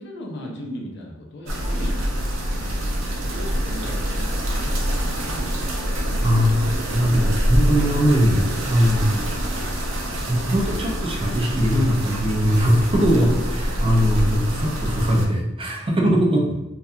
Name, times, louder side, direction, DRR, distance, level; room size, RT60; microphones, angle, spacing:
voice 1, 0.0-2.0 2.6-4.9 5.1-5.4, left 1 dB, 60° left, 0 dB, 0.5 m, -37 dB
sound 1, 1.5-15.3, equal, 80° right, 0.5 m, -25 dB
voice 2, 6.2-9.3 10.3-16.5, equal, 25° right, -1 dB, 0.4 m, -20 dB
2.7 x 2.3 x 2.4 m, 0.94 s
head